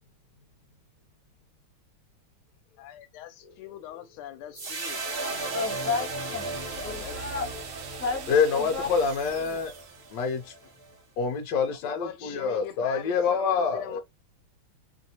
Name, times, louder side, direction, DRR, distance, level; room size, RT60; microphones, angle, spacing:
voice 1, 2.8-5.0 6.8-7.2 11.8-14.0, left 11 dB, 85° left, 1.5 m, -41 dB
sound 1, 4.5-10.9, right 2 dB, 55° right, 0.6 m, -36 dB
sound 2, 4.6-10.3, right 7 dB, 75° right, 1.5 m, -44 dB
voice 2, 5.1-7.5 8.0-8.9, left 4 dB, 10° left, 0.7 m, -33 dB
voice 3, 8.3-9.7 10.1-10.5 11.2-14.0, left 5 dB, 70° left, 1.1 m, -26 dB
3.2 x 2.6 x 2.7 m
omnidirectional pair, 2.3 m